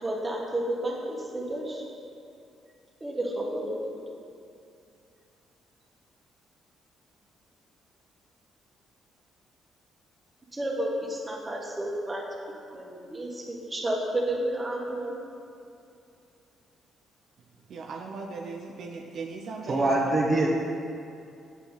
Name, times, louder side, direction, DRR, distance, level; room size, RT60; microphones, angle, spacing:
voice 1, 0.0-1.8 3.0-4.0 10.5-12.2 12.7-15.2, right 1 dB, 20° right, -2 dB, 1.6 m, -31 dB
voice 2, 17.7-19.9, right 4 dB, 65° right, 1 dB, 0.6 m, -38 dB
voice 3, 19.6-20.5, right 2 dB, 40° right, -1 dB, 1.0 m, -23 dB
8.3 x 7.4 x 4.1 m, 2.5 s
cardioid pair, 90°, 0 cm